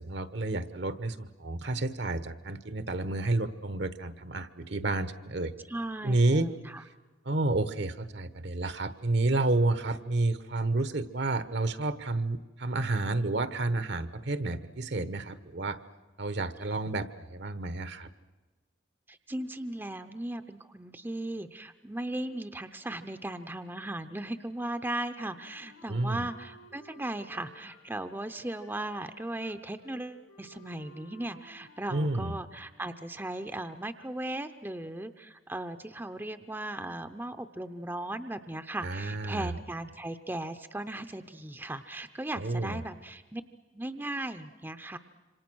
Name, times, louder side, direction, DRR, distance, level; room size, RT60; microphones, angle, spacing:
voice 1, 0.0-5.5 6.0-6.5 7.2-15.8 16.2-18.1 25.9-26.3 31.9-32.4 38.8-39.5 42.4-42.8, right 2 dB, 60° right, 13 dB, 1.1 m, -30 dB
voice 2, 5.7-6.8 19.1-43.4 43.7-45.0, right 1 dB, 10° right, 9 dB, 0.7 m, -37 dB
Wind instrument woodwind instrument, 25.3-32.8, left 1 dB, 85° left, 3.1 m, -57 dB
27.0 x 26.0 x 6.3 m, 1.3 s
head